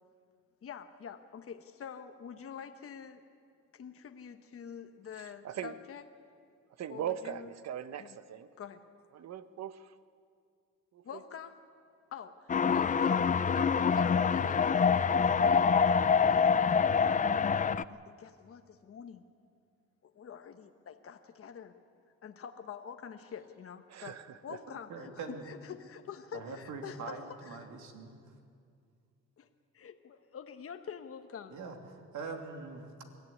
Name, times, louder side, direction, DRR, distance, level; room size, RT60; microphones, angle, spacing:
voice 1, 0.6-3.2 3.7-6.0 6.9-7.5 8.0-8.2 8.6-8.8 11.0-11.6 12.1-16.1 16.4-17.5 17.9-19.2 20.0-21.7 22.2-27.7 29.4-29.5 29.7-31.6, left 7 dB, 50° left, 6 dB, 1.2 m, -46 dB
voice 2, 5.2-5.7 6.8-8.5 9.1-10.0 10.9-11.0 23.9-24.6, right 10 dB, 60° right, 12 dB, 1.1 m, -40 dB
sound 1, 12.5-17.8, left 6 dB, 25° left, 0.5 m, -26 dB
voice 3, 24.9-25.4 26.3-28.2 31.5-33.1, right 4 dB, 75° right, 3 dB, 2.9 m, -43 dB
22.5 x 14.5 x 9.9 m, 2.3 s
cardioid pair, 90°, 30 cm